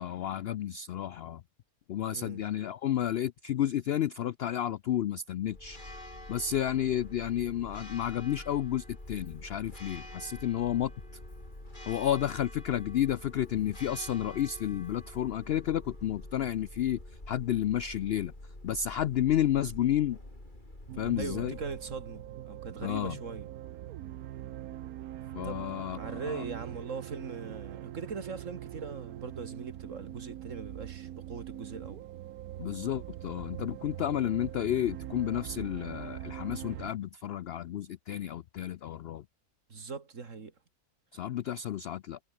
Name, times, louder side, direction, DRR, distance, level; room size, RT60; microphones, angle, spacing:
voice 1, 0.0-1.4 1.9-5.8 6.3-10.9 11.9-18.3 18.6-20.2 21.0-21.6 22.8-23.2 25.3-26.4 32.6-39.2 41.1-42.2, left 11 dB, 75° left, 0.5 m, -31 dB
voice 2, 2.1-2.4 21.1-23.5 25.4-32.0 39.7-40.5, right 4 dB, 55° right, 2.5 m, -41 dB
Church bell, 5.4-22.7, left 1 dB, 30° left, 5.6 m, -47 dB
sound 1, 20.9-36.9, right 13 dB, 75° right, 1.2 m, -42 dB
omnidirectional pair, 1.6 m